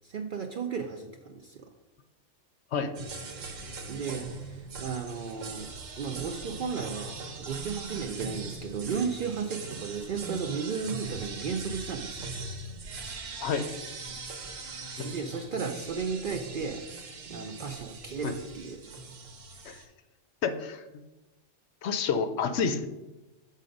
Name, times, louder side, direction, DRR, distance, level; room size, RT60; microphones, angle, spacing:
voice 1, 0.0-1.7 3.9-5.7 6.0-12.3 15.0-18.8, right 5 dB, 65° right, 5 dB, 0.5 m, -34 dB
sound 1, 3.0-19.9, right 3 dB, 80° right, 1.3 m, -40 dB
voice 2, 20.4-20.8 21.8-22.9, left 6 dB, 65° left, 10 dB, 0.8 m, -29 dB
7.4 x 4.0 x 5.2 m, 1.1 s
omnidirectional pair, 1.3 m